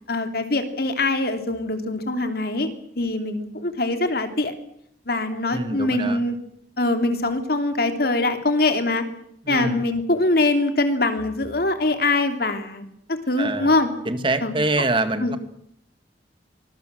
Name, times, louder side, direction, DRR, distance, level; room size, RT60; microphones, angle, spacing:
voice 1, 0.1-2.7 3.0-4.5 5.1-6.4 6.8-9.0 9.5-13.9 14.4-14.5 15.2-15.3, left 2 dB, 60° left, 7 dB, 2.9 m, -23 dB
voice 2, 5.5-6.2 9.5-9.8 13.4-13.7 14.1-15.4, right 2 dB, 30° right, 10 dB, 1.8 m, -25 dB
24.5 x 20.5 x 7.8 m, 0.71 s
head